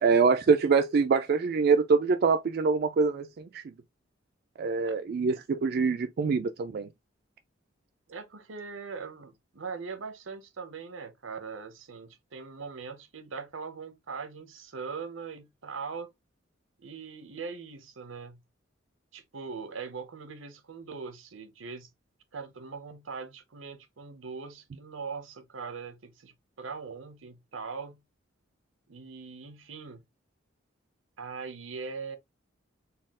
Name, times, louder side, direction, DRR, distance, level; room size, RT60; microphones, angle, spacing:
voice 1, 0.0-3.6 4.6-6.9, right 5 dB, 50° right, 0.3 m, -24 dB
voice 2, 8.1-16.1 16.8-18.4 19.1-21.9 22.3-28.0 28.9-30.0 31.2-32.2, right 5 dB, 80° right, 0.8 m, -41 dB
4.1 x 2.3 x 3.6 m
head